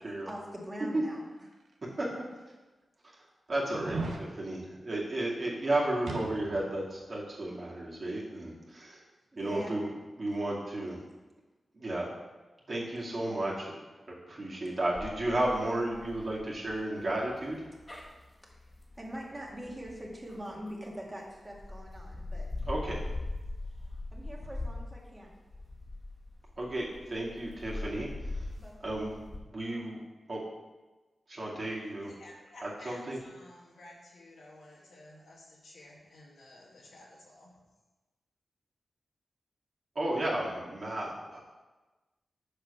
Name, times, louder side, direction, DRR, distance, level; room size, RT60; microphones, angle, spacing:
voice 1, 0.1-1.5 9.3-9.8 18.4-18.7 19.0-22.5 23.6-25.3 28.6-29.0, equal, 25° right, -2 dB, 1.9 m, -43 dB
sound 1, 1.7-1.8 2.5-2.6 3.7-4.3 6.1-6.7 7.0-7.1, right 3 dB, 85° right, 0.9 m, -37 dB
voice 2, 3.5-9.0 9.4-9.9 10.2-11.0 11.7-12.1 12.7-13.7 14.1-17.7 22.7-23.0 26.6-28.1 28.3-28.5 28.8-29.2 29.5-30.0 30.3-30.4 31.3-32.1 32.6-33.2 40.0-41.4, right 1 dB, 50° right, -5 dB, 2.3 m, -33 dB
sound 2, 15.0-20.9 21.4-29.4, left 2 dB, 30° left, 1.6 m, -41 dB
voice 3, 32.2-37.5, left 1 dB, 85° left, -4 dB, 1.8 m, -53 dB
6.5 x 5.1 x 5.5 m, 1.2 s
cardioid pair, 60°, 0 cm